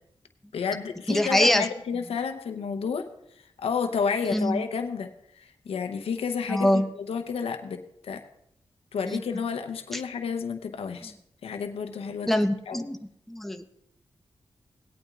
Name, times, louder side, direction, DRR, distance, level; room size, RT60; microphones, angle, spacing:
voice 1, 0.5-3.0 3.6-5.1 5.4-8.2 8.9-11.1 11.4-12.3 12.7-12.8, left 6 dB, 90° left, 7 dB, 0.8 m, -31 dB
voice 2, 1.1-1.7 4.3-4.6 6.5-6.8 9.1-9.2 12.2-13.0 13.3-13.6, left 1 dB, 5° left, 7 dB, 0.8 m, -23 dB
18.0 x 8.8 x 2.4 m, 0.77 s
cardioid pair, 50°, 10 cm